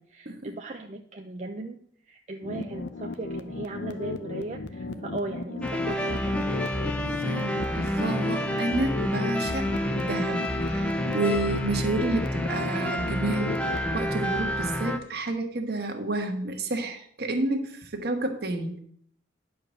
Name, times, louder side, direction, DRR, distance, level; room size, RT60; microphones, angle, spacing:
voice 1, 0.0-1.8 2.1-6.6, right 2 dB, 40° right, 3 dB, 0.5 m, -38 dB
sound 1, 2.4-14.0, left 3 dB, 75° left, 0.7 m, -36 dB
sound 2, 5.6-15.0, left 1 dB, 5° left, 0.7 m, -29 dB
voice 2, 7.0-9.7 10.0-18.8, right 2 dB, 60° right, 4 dB, 1.4 m, -30 dB
10.0 x 4.8 x 6.4 m, 0.63 s
head